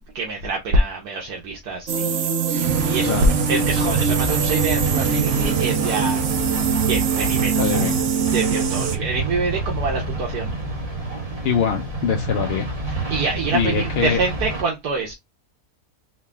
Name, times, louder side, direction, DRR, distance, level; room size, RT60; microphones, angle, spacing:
voice 1, 0.1-6.5 6.8-7.9 8.3-10.5 12.9-15.1, right 3 dB, 85° right, 1.5 m, -25 dB
sound 1, 1.9-9.0, right 6 dB, 60° right, 0.8 m, -22 dB
sound 2, 2.6-14.6, right 2 dB, 25° right, 1.2 m, -27 dB
voice 2, 3.1-3.4 7.6-8.0 11.4-12.7 13.5-14.2, left 7 dB, 60° left, 0.7 m, -23 dB
3.9 x 3.0 x 3.4 m
omnidirectional pair, 1.6 m